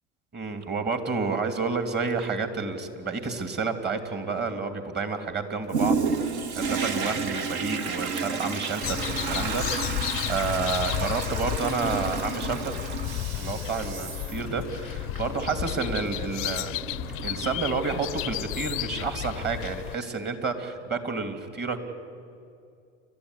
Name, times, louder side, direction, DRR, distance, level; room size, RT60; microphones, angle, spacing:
voice 1, 0.3-12.9 13.3-16.7 17.2-21.8, right 4 dB, 30° right, 7 dB, 2.9 m, -30 dB
Toilet flush, 5.7-18.1 18.7-18.8, right 4 dB, 70° right, 2.1 m, -32 dB
sound 1, 8.8-20.0, left 19 dB, 40° left, 0.5 m, -33 dB
29.0 x 13.0 x 9.9 m, 2.4 s
hypercardioid pair, 100°, 34 cm